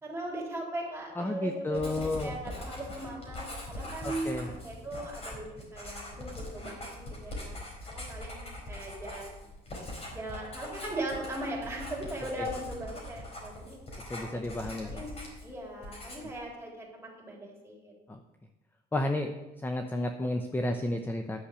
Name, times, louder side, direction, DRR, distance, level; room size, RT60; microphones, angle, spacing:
voice 1, 0.0-5.5 5.7-7.6 7.8-9.4 10.1-13.8 14.3-15.1 15.4-17.9, right 1 dB, 15° right, -2 dB, 3.7 m, -39 dB
voice 2, 1.2-2.3 4.0-4.5 14.1-15.0 18.1-18.2 18.9-19.3 19.6-21.5, left 1 dB, 10° left, 6 dB, 0.7 m, -32 dB
Writing, 1.7-15.5 15.8-16.4, left 1 dB, 35° left, 4.1 m, -42 dB
10.5 x 6.5 x 7.0 m, 1.0 s
cardioid pair, 110°, 17 cm